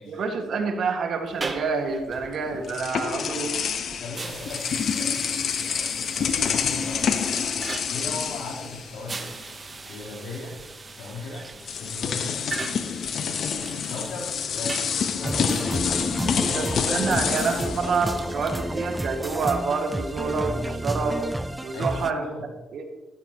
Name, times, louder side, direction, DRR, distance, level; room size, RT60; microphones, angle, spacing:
voice 1, 0.1-3.6 16.4-21.2 21.6-22.3 22.7-22.8, right 4 dB, 60° right, 4 dB, 1.9 m, -27 dB
sound 1, 1.2-20.8, right 3 dB, 30° right, 1.0 m, -41 dB
sound 2, 2.2-9.4 9.7-9.9 11.0-11.1 11.6-18.8, left 7 dB, 60° left, 1.0 m, -28 dB
voice 2, 4.0-7.5 7.9-9.4 9.9-10.5 11.0-11.5 11.8-12.7 13.1-15.8 16.2-17.2 21.7-22.5, left 2 dB, 85° left, -3 dB, 3.7 m, -38 dB
sound 3, 15.2-22.1, right 1 dB, 10° right, 0.5 m, -31 dB
14.0 x 13.0 x 3.0 m, 1.1 s
cardioid pair, 90°, 0 cm